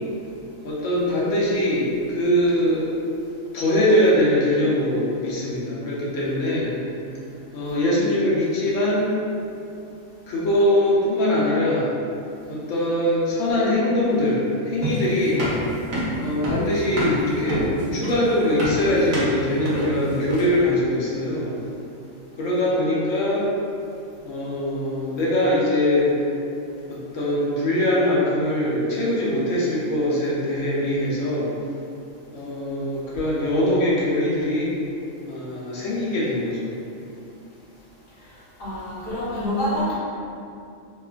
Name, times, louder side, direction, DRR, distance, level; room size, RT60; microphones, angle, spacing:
voice 1, 0.6-2.9 3.5-6.7 7.5-9.1 10.3-11.9 12.5-15.5 16.2-17.6 17.9-21.5 22.4-23.5 24.2-26.2 26.9-31.5 32.3-34.7 35.3-36.6, left 1 dB, 75° left, -6 dB, 1.0 m, -22 dB
sound 1, 14.8-20.7, equal, 70° right, 1.0 m, -27 dB
voice 2, 38.6-39.9, equal, 50° left, -11 dB, 1.1 m, -26 dB
2.9 x 2.4 x 2.3 m, 2.6 s
omnidirectional pair, 1.3 m